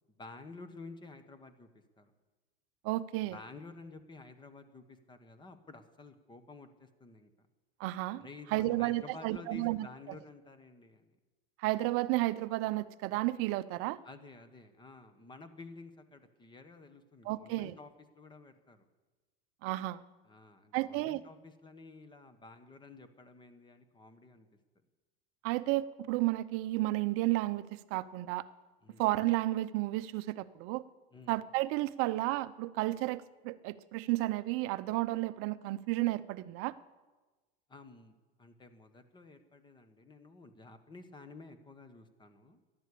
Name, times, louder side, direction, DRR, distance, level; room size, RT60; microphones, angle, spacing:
voice 1, 0.2-1.7 2.0-2.1 3.2-7.3 8.2-11.1 14.0-18.9 20.2-24.5 28.8-29.0 31.1-31.3 37.7-42.6, left 3 dB, 15° left, 9 dB, 1.3 m, -52 dB
voice 2, 2.8-3.4 7.8-9.8 11.6-14.0 17.2-17.7 19.6-20.0 20.7-21.2 25.4-28.4 29.0-30.8 31.3-36.8, right 18 dB, 45° right, 15 dB, 0.7 m, -32 dB
13.5 x 11.5 x 8.4 m, 1.2 s
supercardioid pair, 130°, 31 cm